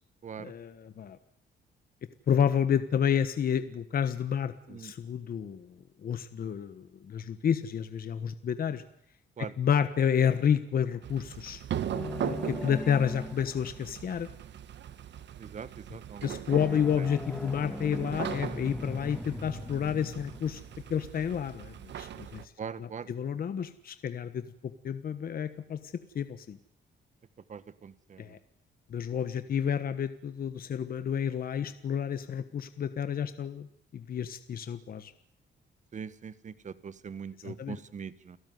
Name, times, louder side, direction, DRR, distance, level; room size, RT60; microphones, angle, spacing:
voice 1, 0.4-1.2 2.3-5.7 6.0-8.8 9.6-11.6 12.2-14.3 16.2-20.6 20.9-22.4 22.8-24.4 24.8-25.8 26.1-26.6 28.2-28.4 28.9-33.7 33.9-35.1 37.4-37.8, left 8 dB, 50° left, 11 dB, 1.4 m, -30 dB
sound 1, 11.0-22.4, right 10 dB, 70° right, 1.5 m, -40 dB
sound 2, 11.9-14.2 16.5-21.5, left 1 dB, 5° left, 2.0 m, -40 dB
voice 2, 15.4-16.3 22.6-23.1 27.5-28.4 35.9-38.4, right 6 dB, 40° right, 15 dB, 1.5 m, -42 dB
29.5 x 18.0 x 9.5 m, 0.68 s
wide cardioid pair, 155°, 19 cm